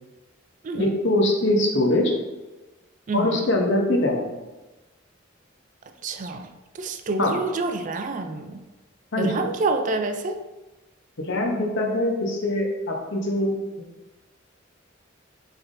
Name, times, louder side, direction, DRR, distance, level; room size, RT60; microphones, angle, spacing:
voice 1, 0.7-2.1 3.1-4.3 7.2-7.3 9.1-9.4 11.3-13.7, left 1 dB, 65° left, 1 dB, 0.8 m, -23 dB
voice 2, 3.1-3.5 6.0-6.5 6.7-8.6 9.2-10.4, right 3 dB, 40° right, 7 dB, 0.3 m, -27 dB
5.6 x 3.5 x 2.6 m, 1.1 s
head